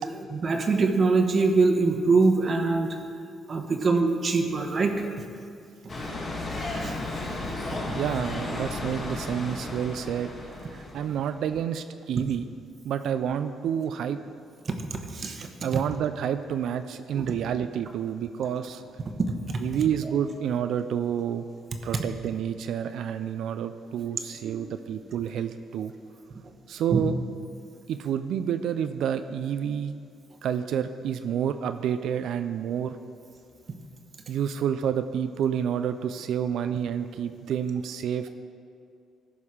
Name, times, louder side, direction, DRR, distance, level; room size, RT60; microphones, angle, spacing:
voice 1, 0.3-3.0 3.5-5.1 6.8-7.0 7.7-7.8 14.7-15.8 17.1-17.3 19.5-19.6 20.0-20.1 24.4-24.6 26.9-27.0, right 3 dB, 45° right, 4 dB, 1.0 m, -24 dB
sound 1, 5.9-11.3, left 2 dB, 40° left, 2.0 m, -34 dB
voice 2, 7.9-10.3 10.6-12.5 12.8-14.2 15.6-18.8 19.6-21.5 21.8-25.9 26.7-27.2 27.9-29.9 30.4-33.0 34.3-38.3, right 8 dB, 75° right, 9 dB, 0.3 m, -29 dB
14.0 x 5.5 x 4.9 m, 2.4 s
cardioid pair, 90°, 0 cm